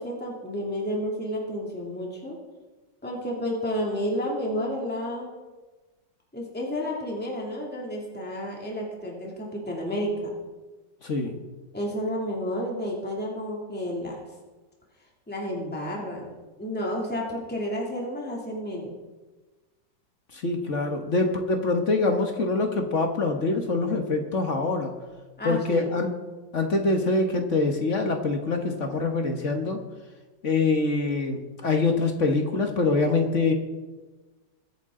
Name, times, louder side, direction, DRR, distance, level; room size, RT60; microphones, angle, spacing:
voice 1, 0.0-2.4 3.0-5.3 6.3-10.4 11.7-14.2 15.3-18.9 25.4-25.9, equal, 5° left, -2 dB, 2.4 m, -31 dB
voice 2, 11.0-11.4 20.3-24.9 25.4-26.1 26.5-29.8 30.4-33.5, left 3 dB, 45° left, 4 dB, 1.4 m, -25 dB
22.0 x 8.9 x 3.8 m, 1.2 s
omnidirectional pair, 2.1 m